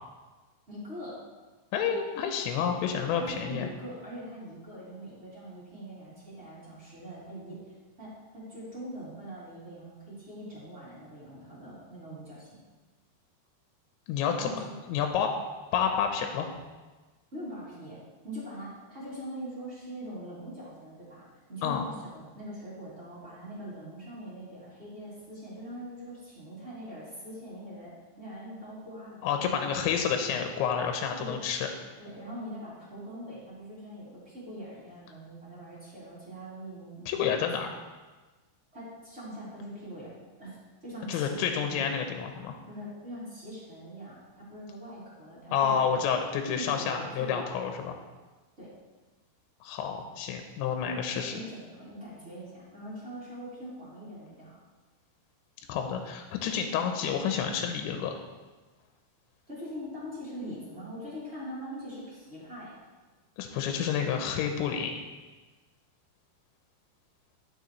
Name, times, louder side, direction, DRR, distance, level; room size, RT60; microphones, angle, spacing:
voice 1, 0.7-1.2 3.2-7.6 8.0-12.6 14.3-14.8 17.3-18.0 18.2-29.8 31.2-31.4 32.0-37.4 38.7-40.1 40.4-40.5 40.8-41.8 42.7-46.0 46.5-47.5 47.8-47.9 48.6-48.7 50.9-54.6 59.5-62.8, equal, 20° right, -9 dB, 2.2 m, -42 dB
voice 2, 1.7-3.7 14.1-14.5 14.9-15.3 15.7-16.5 21.6-21.9 29.2-31.7 37.1-37.7 41.1-42.6 45.5-48.0 49.6-51.3 55.7-58.1 63.4-64.9, left 7 dB, 90° left, 5 dB, 3.0 m, -29 dB
11.5 x 6.2 x 3.1 m, 1.3 s
omnidirectional pair, 5.1 m